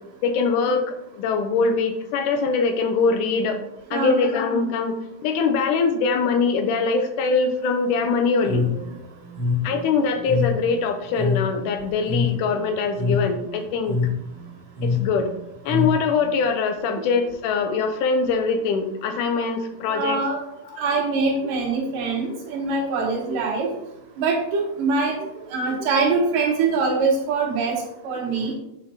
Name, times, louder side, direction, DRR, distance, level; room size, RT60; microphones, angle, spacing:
voice 1, 0.2-3.6 3.9-5.0 5.2-8.6 9.6-14.0 14.8-15.3 15.7-20.2, left 4 dB, 75° left, 7 dB, 2.0 m, -22 dB
voice 2, 3.9-4.3 8.5-8.8 19.9-20.4 20.8-23.7 24.2-27.8 28.0-28.5, right 4 dB, 75° right, 0 dB, 2.8 m, -23 dB
sound 1, 8.4-16.3, left 4 dB, 35° right, 0.5 m, -26 dB
9.0 x 4.6 x 2.7 m, 0.81 s
omnidirectional pair, 3.9 m